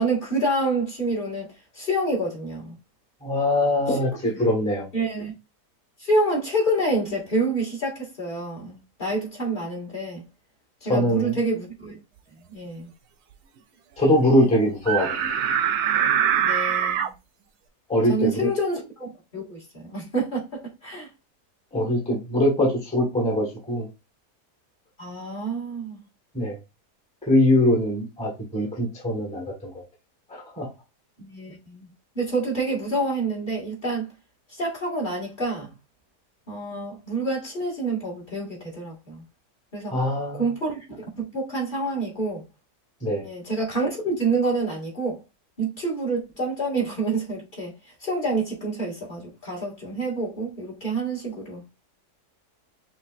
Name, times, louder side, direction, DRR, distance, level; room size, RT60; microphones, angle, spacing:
voice 1, 0.0-2.8 3.9-4.1 4.4-4.5 4.9-5.3 6.0-10.2 10.8-11.9 12.5-12.9 16.4-17.1 18.1-19.1 19.3-21.1 25.0-26.0 31.2-31.9 32.2-34.1 34.5-35.7 36.5-39.2 39.7-39.9 40.4-42.4 43.2-45.2 45.6-47.7 48.0-51.6, right 2 dB, 30° left, 2.0 m, -27 dB
voice 2, 3.2-4.9 10.9-11.4 14.0-15.1 17.9-18.5 21.7-23.9 26.3-26.6 27.2-29.7 30.3-30.7 39.9-40.5 43.0-43.2, left 1 dB, 5° left, 1.2 m, -22 dB
sound 1, 14.9-17.1, right 9 dB, 75° right, 1.1 m, -23 dB
6.0 x 3.2 x 2.4 m
omnidirectional pair, 1.8 m